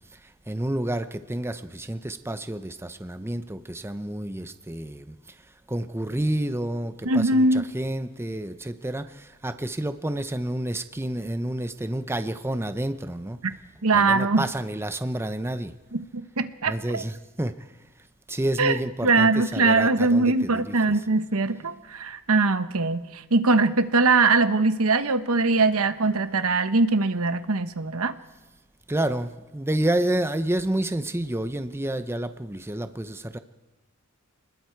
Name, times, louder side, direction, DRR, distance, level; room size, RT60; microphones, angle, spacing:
voice 1, 0.5-5.2 5.7-13.4 13.9-15.7 16.7-17.6 18.3-20.8 28.9-33.4, right 1 dB, 10° right, 10 dB, 0.7 m, -29 dB
voice 2, 7.0-7.6 13.8-14.5 15.9-17.0 18.6-28.1, right 3 dB, 75° right, 11 dB, 1.1 m, -22 dB
28.0 x 20.5 x 4.6 m, 1.1 s
head